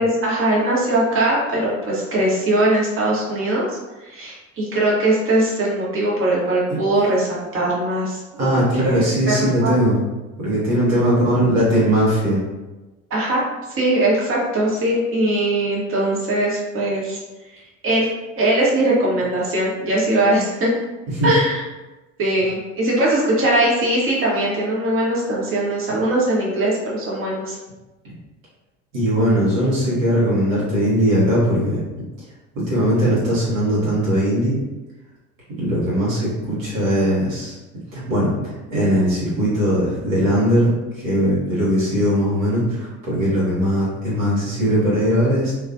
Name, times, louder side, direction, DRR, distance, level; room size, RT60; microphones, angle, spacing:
voice 1, 0.0-3.8 4.0-9.7 10.9-11.0 13.1-13.4 13.8-17.2 17.8-18.1 18.4-20.7 21.2-21.6 22.2-27.6, right 1 dB, 30° right, -5 dB, 0.9 m, -20 dB
voice 2, 8.4-10.0 10.4-12.4 21.1-21.3 28.9-31.8 32.5-34.6 35.6-37.5 37.9-40.7 41.0-45.5, equal, 85° right, -9 dB, 1.1 m, -19 dB
2.3 x 2.3 x 2.5 m, 1.1 s
figure-of-eight pair, 60°, 40 cm